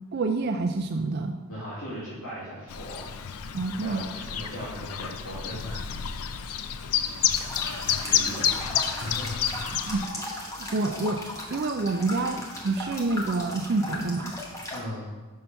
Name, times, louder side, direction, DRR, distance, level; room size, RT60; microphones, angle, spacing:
voice 1, 0.1-1.4 3.5-4.0 9.9-10.2 10.6-11.2 11.5-14.3, right 3 dB, 50° right, 6 dB, 0.4 m, -27 dB
voice 2, 1.5-3.3 3.8-5.9 7.7-9.8 14.7-15.1, equal, 65° left, -11 dB, 2.3 m, -38 dB
Chirp tweet, 2.7-10.1, left 9 dB, 90° left, 0.4 m, -29 dB
sound 1, 7.3-14.8, left 1 dB, 15° left, 0.9 m, -37 dB
5.9 x 5.6 x 5.3 m, 1.2 s
head